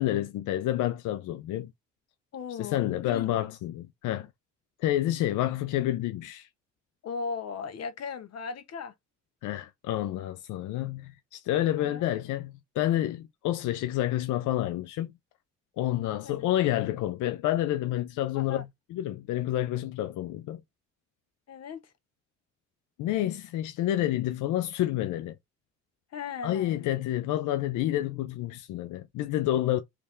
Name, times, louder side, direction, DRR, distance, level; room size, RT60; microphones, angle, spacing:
voice 1, 0.0-1.7 2.6-4.3 4.8-6.5 9.4-15.1 15.8-20.6 23.0-25.4 26.4-29.8, left 13 dB, 90° left, 0.6 m, -29 dB
voice 2, 2.3-3.4 7.0-8.9 11.8-12.0 16.2-16.5 18.3-18.6 21.5-21.8 26.1-26.8, left 5 dB, 55° left, 1.2 m, -37 dB
3.4 x 3.4 x 4.3 m
cardioid pair, 90°, 30 cm